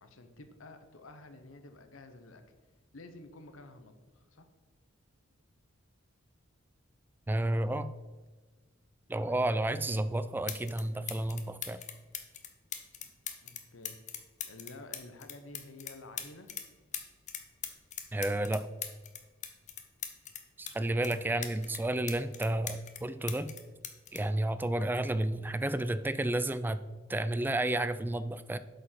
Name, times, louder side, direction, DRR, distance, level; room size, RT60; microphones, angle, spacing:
voice 1, 0.0-2.4 2.9-4.5 9.2-9.5 13.2-14.0 14.5-16.5 21.0-21.7, left 2 dB, 85° left, 8 dB, 1.0 m, -51 dB
voice 2, 7.3-7.9 9.1-11.8 18.1-18.7 20.6-23.5 24.1-26.8 27.1-28.6, right 1 dB, 10° right, 13 dB, 0.3 m, -31 dB
sound 1, 10.0-10.1 10.5-10.8 11.1-16.7 16.9-20.7 21.0-23.0 23.3-25.1 26.0-26.3, left 9 dB, 35° left, 0.8 m, -41 dB
8.1 x 5.2 x 5.8 m, 1.3 s
head